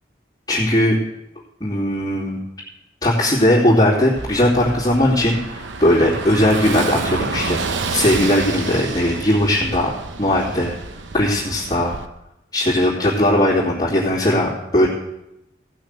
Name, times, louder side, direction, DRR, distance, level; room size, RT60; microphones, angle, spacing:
voice 1, 0.5-1.0 1.6-2.4 3.0-7.6 7.9-10.8 11.1-11.9 12.5-14.9, left 1 dB, 20° left, -11 dB, 2.8 m, -18 dB
Car passing by / Engine, 4.2-12.1, right 4 dB, 80° right, 0.8 m, -29 dB
17.0 x 6.3 x 6.5 m, 0.89 s
head